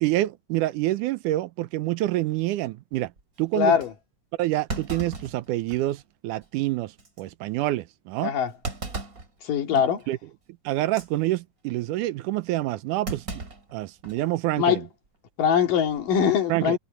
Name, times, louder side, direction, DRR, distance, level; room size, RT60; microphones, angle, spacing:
voice 1, 0.0-3.1 3.4-3.8 4.4-6.9 7.2-8.3 9.7-10.2 10.7-13.3 13.7-14.9 16.5-16.8, right 16 dB, 80° right, 2.1 m, -27 dB
Thump thud, 3.2-3.3 3.8-3.9 4.7-6.0 6.4-6.5 7.0-7.2 8.6-9.3 9.8-10.0 10.8-11.1 13.1-14.3 14.6-14.7 15.8-16.2, right 3 dB, 25° right, 3.1 m, -36 dB
voice 2, 3.6-3.9 8.2-8.5 9.4-10.0 14.6-14.8 15.4-16.8, left 8 dB, 85° left, 3.9 m, -22 dB
omnidirectional pair, 3.7 m